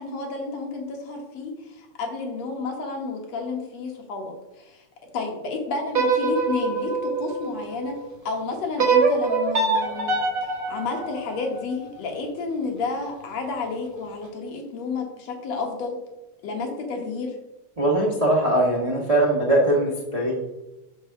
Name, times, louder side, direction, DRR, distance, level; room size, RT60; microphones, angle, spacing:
voice 1, 0.0-4.8 5.1-7.9 8.3-16.0 16.4-17.4, left 4 dB, 65° left, 2 dB, 2.2 m, -31 dB
sound 1, 5.9-8.1 8.8-11.9, right 4 dB, 60° right, 0.8 m, -24 dB
voice 2, 17.8-20.3, right 1 dB, 40° right, -4 dB, 0.5 m, -21 dB
6.1 x 5.4 x 5.7 m, 1.0 s
omnidirectional pair, 3.5 m